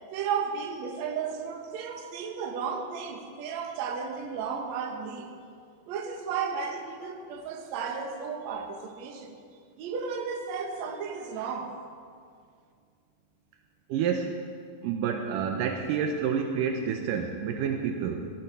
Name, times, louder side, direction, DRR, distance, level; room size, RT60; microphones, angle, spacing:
voice 1, 0.1-5.3 5.9-9.4 9.8-11.8, right 6 dB, 65° right, 4 dB, 2.1 m, -34 dB
voice 2, 13.9-14.3 14.8-18.3, right 7 dB, 80° right, 4 dB, 2.2 m, -29 dB
16.0 x 10.5 x 4.8 m, 2.2 s
omnidirectional pair, 4.0 m